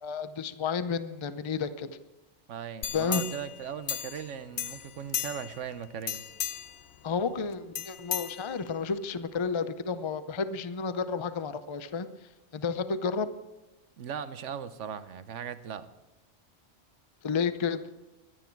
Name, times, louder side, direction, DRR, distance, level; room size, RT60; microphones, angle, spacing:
voice 1, 0.0-1.9 2.9-3.2 7.0-12.1 12.5-13.3 17.2-17.8, left 5 dB, 35° left, 12 dB, 0.5 m, -31 dB
voice 2, 2.5-6.2 14.0-15.9, right 8 dB, 85° right, 12 dB, 1.2 m, -38 dB
sound 1, 2.8-4.3 4.6-5.6 6.0-6.8 7.7-8.9 9.3-9.4, left 9 dB, 65° left, 0.9 m, -35 dB
23.0 x 9.4 x 4.6 m, 1.0 s
omnidirectional pair, 1.2 m